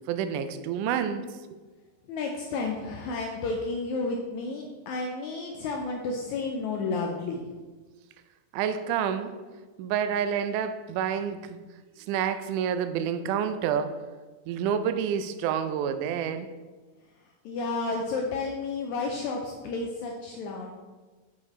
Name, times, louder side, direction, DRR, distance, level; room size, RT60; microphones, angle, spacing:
voice 1, 0.1-1.3 8.5-9.4 9.8-11.6 12.0-14.0 14.5-16.5, right 8 dB, 80° right, 10 dB, 1.9 m, -28 dB
voice 2, 2.1-7.5 17.4-20.7, left 3 dB, 85° left, 1 dB, 1.7 m, -31 dB
7.0 x 4.9 x 4.2 m, 1.3 s
omnidirectional pair, 3.9 m